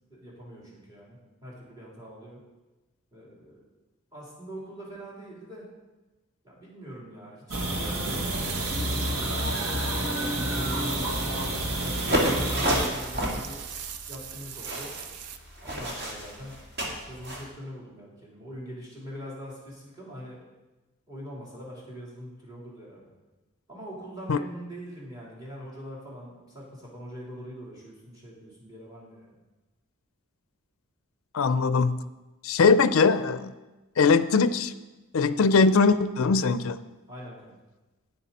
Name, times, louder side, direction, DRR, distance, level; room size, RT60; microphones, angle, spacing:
voice 1, 0.1-2.4 3.1-3.6 4.1-5.7 6.4-9.6 9.8-13.6 14.1-15.0 15.6-16.6 17.1-20.4 21.1-23.1 23.7-29.3 37.1-37.6, equal, 20° right, -5 dB, 3.5 m, -43 dB
sound 1, 7.5-12.9, right 1 dB, 65° right, 1.4 m, -29 dB
sound 2, 8.0-15.4, right 9 dB, 85° right, 0.6 m, -41 dB
sound 3, 12.0-17.5, equal, 45° right, 2.0 m, -31 dB
voice 2, 31.3-32.0 32.4-33.5 34.0-34.7 35.1-36.8, left 4 dB, 60° left, 13 dB, 0.4 m, -21 dB
10.0 x 9.7 x 4.2 m, 1.1 s
head